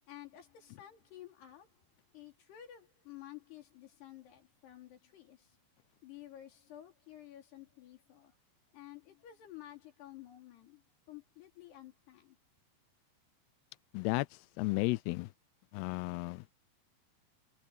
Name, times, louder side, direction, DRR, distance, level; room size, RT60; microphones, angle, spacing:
voice 1, 0.1-1.9 2.1-5.6 6.0-8.3 8.7-12.4, left 13 dB, 65° left, 5.2 m, -52 dB
voice 2, 13.9-15.3 15.7-16.4, left 22 dB, 80° left, 2.4 m, -34 dB
omnidirectional pair, 5.2 m